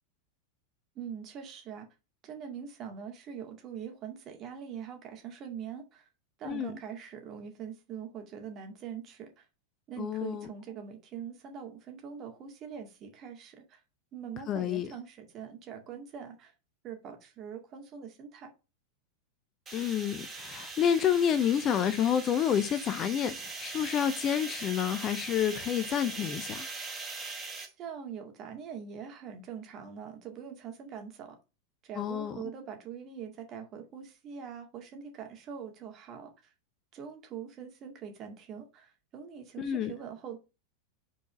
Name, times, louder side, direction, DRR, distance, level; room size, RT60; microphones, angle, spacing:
voice 1, 1.0-1.9 2.2-6.1 6.4-9.5 9.9-13.8 14.1-16.5 16.8-18.5 27.6-31.4 31.8-36.5 36.9-40.4, right 7 dB, 35° right, 2.0 m, -43 dB
voice 2, 10.0-10.5 14.5-14.9 19.7-26.7 32.0-32.4 39.6-39.9, left 9 dB, 30° left, 0.7 m, -29 dB
sound 1, 19.7-27.7, right 3 dB, 15° right, 2.4 m, -41 dB
5.5 x 4.6 x 6.0 m
figure-of-eight pair, 90°, 0 cm